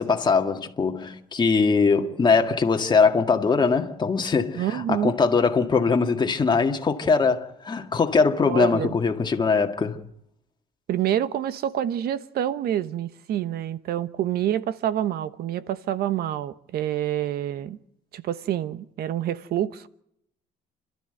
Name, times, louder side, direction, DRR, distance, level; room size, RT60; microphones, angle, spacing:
voice 1, 0.0-10.0, left 4 dB, 25° left, 1.9 m, -21 dB
voice 2, 4.5-5.1 8.5-8.9 10.9-17.8 18.1-19.9, right 11 dB, 65° right, 1.1 m, -27 dB
30.0 x 12.5 x 7.9 m
cardioid pair, 110°, 17 cm